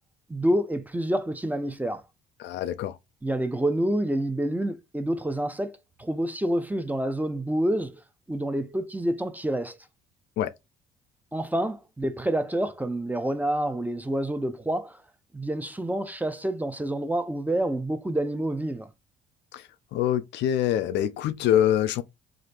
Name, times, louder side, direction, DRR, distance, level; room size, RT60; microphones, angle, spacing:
voice 1, 0.3-2.0 3.2-8.0 8.3-9.9 11.3-15.0 15.3-18.9, right 1 dB, 10° right, 0.5 m, -28 dB
voice 2, 2.4-3.0 10.4-10.5 19.5-19.6 19.9-22.0, left 11 dB, 60° left, 0.4 m, -25 dB
3.1 x 2.4 x 2.5 m
hypercardioid pair, 55°, 21 cm